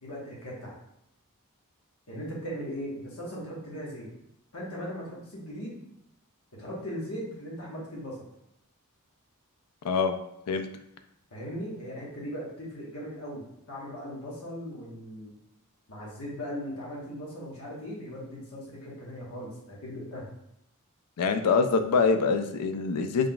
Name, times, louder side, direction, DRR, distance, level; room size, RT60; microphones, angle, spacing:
voice 1, 0.0-0.7 2.1-4.1 4.5-5.8 6.5-8.2 11.3-15.3 15.9-20.3, equal, 70° left, -5 dB, 1.3 m, -38 dB
voice 2, 21.2-23.3, left 5 dB, 90° left, 8 dB, 0.4 m, -24 dB
3.8 x 3.5 x 2.3 m, 0.81 s
head